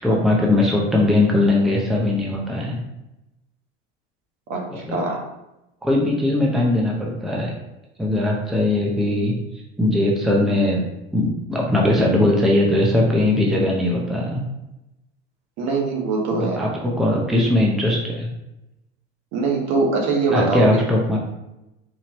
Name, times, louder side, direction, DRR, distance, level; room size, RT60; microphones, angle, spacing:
voice 1, 0.0-2.8 4.7-5.0 5.8-7.5 8.0-9.3 9.8-10.8 11.1-14.4 16.4-18.3 20.3-21.2, left 1 dB, ahead, -2 dB, 0.6 m, -20 dB
voice 2, 4.9-5.2 15.6-16.6 19.3-20.8, right 3 dB, 55° right, -1 dB, 1.3 m, -22 dB
4.4 x 2.7 x 3.0 m, 0.92 s
supercardioid pair, 105°, 32 cm